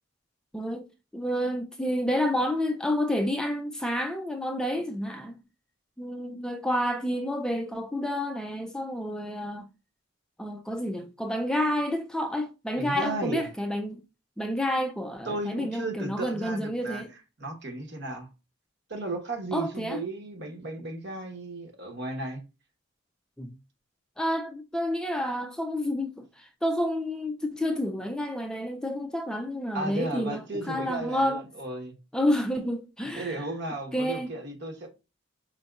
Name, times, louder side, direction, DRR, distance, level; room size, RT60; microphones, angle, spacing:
voice 1, 0.5-0.9 1.1-5.4 6.0-9.7 10.4-14.0 14.4-17.1 19.5-20.0 23.4-23.5 24.2-31.4 32.1-33.4 33.9-34.4, left 1 dB, 5° left, 0.3 m, -29 dB
voice 2, 12.8-13.5 15.2-18.3 18.9-22.4 29.7-31.9 33.1-34.9, right 2 dB, 60° right, 1.1 m, -34 dB
5.1 x 4.1 x 2.3 m
head